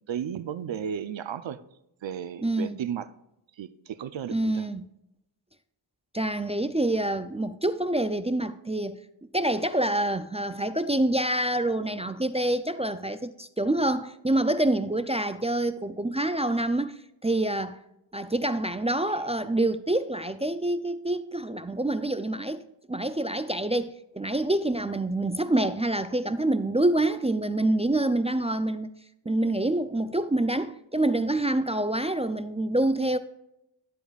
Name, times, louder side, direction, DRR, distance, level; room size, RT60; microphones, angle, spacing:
voice 1, 0.1-1.6 2.0-3.1 3.6-4.6, right 8 dB, 80° right, 0.6 m, -34 dB
voice 2, 2.4-2.8 4.3-4.9 6.1-9.0 9.3-17.0 17.2-17.8 18.1-28.9 29.3-33.2, right 1 dB, 15° right, 0.3 m, -26 dB
11.5 x 8.2 x 2.4 m
wide cardioid pair, 105°, 45 cm